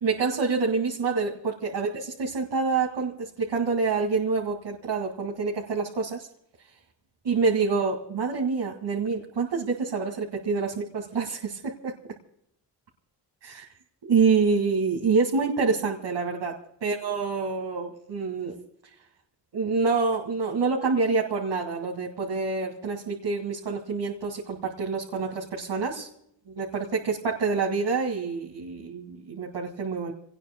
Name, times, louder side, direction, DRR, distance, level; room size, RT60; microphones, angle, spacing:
voice 1, 0.0-6.3 7.2-11.9 13.4-13.7 14.0-18.6 19.5-26.1 26.5-30.1, right 4 dB, 75° right, -1 dB, 2.2 m, -27 dB
27.5 x 19.0 x 2.2 m, 0.74 s
cardioid pair, 65°, 43 cm